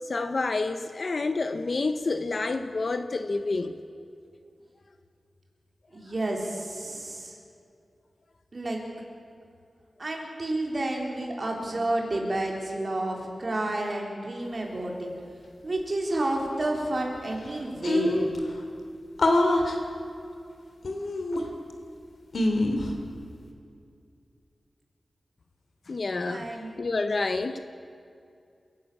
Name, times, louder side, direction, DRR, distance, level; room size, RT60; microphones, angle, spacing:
voice 1, 0.1-3.8 25.9-26.5 26.8-27.6, left 3 dB, 50° left, 9 dB, 0.8 m, -28 dB
voice 2, 5.9-7.4 8.5-8.8 10.0-15.1 15.6-18.2 26.3-26.7, right 1 dB, 40° right, 0 dB, 3.9 m, -30 dB
sound 1, 17.2-17.3 17.4-17.5 17.8-18.4 19.2-19.8 20.8-21.7 22.3-22.9, left 1 dB, 65° left, 2.5 m, -24 dB
28.5 x 11.5 x 8.6 m, 2.4 s
wide cardioid pair, 125°, 0 cm